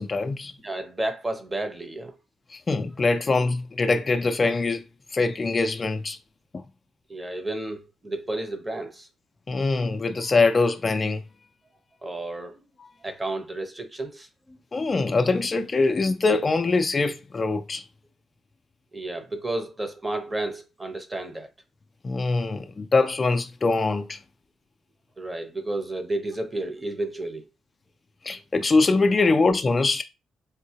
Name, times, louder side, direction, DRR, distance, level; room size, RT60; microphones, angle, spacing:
voice 1, 0.0-0.5 2.5-4.8 5.1-6.2 9.5-11.2 12.8-12.9 14.7-17.8 22.0-24.2 28.2-30.0, left 3 dB, 30° left, 0.4 m, -23 dB
voice 2, 0.6-2.1 7.1-9.1 12.0-12.5 13.0-14.6 18.9-21.5 25.2-27.4 29.2-29.3, right 2 dB, 20° right, 0.7 m, -32 dB
3.6 x 2.7 x 2.8 m
cardioid pair, 90°, 0 cm